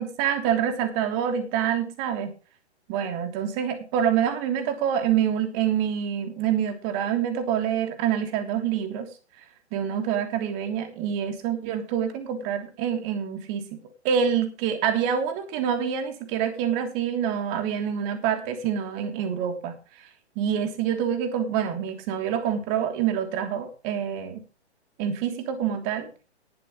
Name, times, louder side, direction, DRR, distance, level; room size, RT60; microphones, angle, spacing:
voice 1, 0.0-2.3 2.9-9.1 9.7-19.8 20.3-24.4 25.0-26.1, right 8 dB, 30° right, 7 dB, 3.1 m, -26 dB
19.5 x 8.3 x 3.2 m, 0.34 s
figure-of-eight pair, 125°, 34 cm